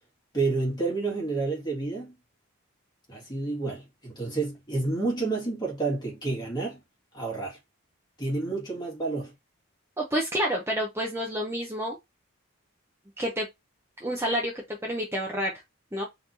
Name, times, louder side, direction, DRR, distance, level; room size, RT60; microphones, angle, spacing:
voice 1, 0.3-2.1 3.1-6.8 7.1-7.6 8.2-9.3, right 3 dB, 20° left, 1.8 m, -29 dB
voice 2, 10.0-12.0 13.2-13.5 14.0-15.5 15.9-16.1, equal, 10° right, 0.7 m, -29 dB
4.0 x 3.2 x 2.7 m
head